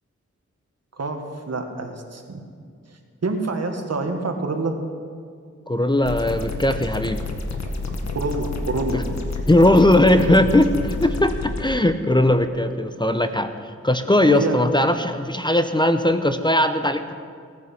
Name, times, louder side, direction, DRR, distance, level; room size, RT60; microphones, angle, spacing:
voice 1, 1.0-2.5 3.2-4.8 8.1-9.0 14.3-14.6, right 3 dB, 60° right, 4 dB, 1.7 m, -27 dB
voice 2, 5.7-7.2 8.9-9.0 9.5-13.5 13.8-17.1, left 1 dB, 15° left, 8 dB, 0.8 m, -19 dB
sound 1, 6.0-11.6, left 3 dB, 65° left, 1.7 m, -29 dB
18.0 x 9.5 x 5.9 m, 2.2 s
cardioid pair, 55°, 29 cm